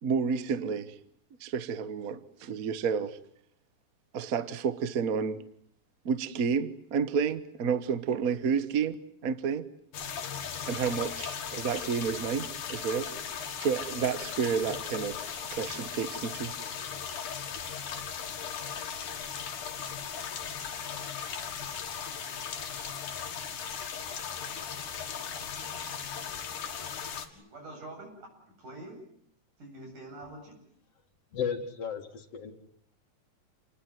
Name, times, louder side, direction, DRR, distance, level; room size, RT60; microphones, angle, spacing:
voice 1, 0.0-1.0 1.4-3.2 4.1-5.4 6.0-9.0 9.2-9.6 10.7-13.1 13.6-15.2 15.5-16.5, right 6 dB, 50° right, 1.0 m, -30 dB
sound 1, 9.9-27.3, left 7 dB, 85° left, 3.7 m, -37 dB
voice 2, 27.3-28.1 28.6-29.0 29.6-30.6, right 2 dB, 90° right, 9.6 m, -45 dB
voice 3, 31.3-32.5, left 7 dB, 55° left, 3.0 m, -34 dB
28.5 x 20.5 x 9.4 m
omnidirectional pair, 3.5 m